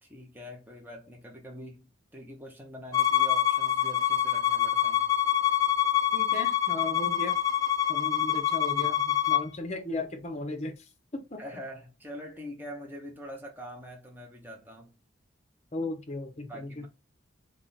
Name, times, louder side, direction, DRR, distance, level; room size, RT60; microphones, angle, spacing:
voice 1, 0.0-5.1 11.4-14.9 16.5-16.9, equal, 10° right, 0.9 m, -44 dB
Bowed string instrument, 2.9-9.5, left 11 dB, 20° left, 0.3 m, -26 dB
voice 2, 6.1-7.4 7.9-11.4 15.7-16.9, left 2 dB, 35° left, 0.8 m, -36 dB
3.5 x 3.3 x 4.2 m
head